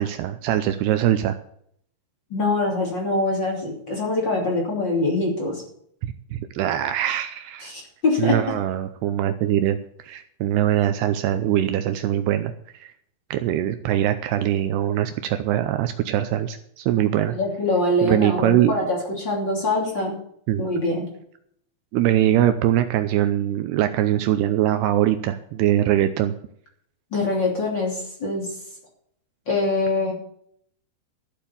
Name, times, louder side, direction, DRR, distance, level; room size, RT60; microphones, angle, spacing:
voice 1, 0.0-1.4 6.0-7.7 8.2-12.5 12.8-12.9 13.3-17.3 18.0-18.8 20.5-20.6 21.9-26.3, right 12 dB, 80° right, 9 dB, 2.5 m, -22 dB
voice 2, 2.3-5.6 7.6-8.4 17.3-20.1 20.6-21.1 27.1-28.5 29.5-30.1, left 2 dB, 30° left, -1 dB, 3.0 m, -24 dB
13.5 x 7.4 x 7.0 m, 0.67 s
omnidirectional pair, 5.1 m